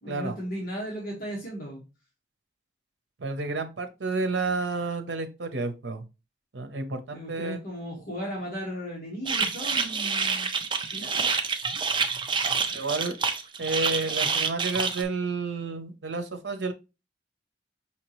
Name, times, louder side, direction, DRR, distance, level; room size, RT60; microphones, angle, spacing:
voice 1, 0.0-1.8 7.1-10.5 10.9-11.3, equal, 55° left, -4 dB, 1.4 m, -36 dB
voice 2, 3.2-6.0 6.5-7.6 12.7-13.2 13.6-16.7, right 3 dB, 80° right, 8 dB, 0.7 m, -30 dB
sound 1, 9.2-15.0, right 5 dB, 25° right, 0.5 m, -27 dB
5.7 x 2.9 x 3.0 m, 0.28 s
head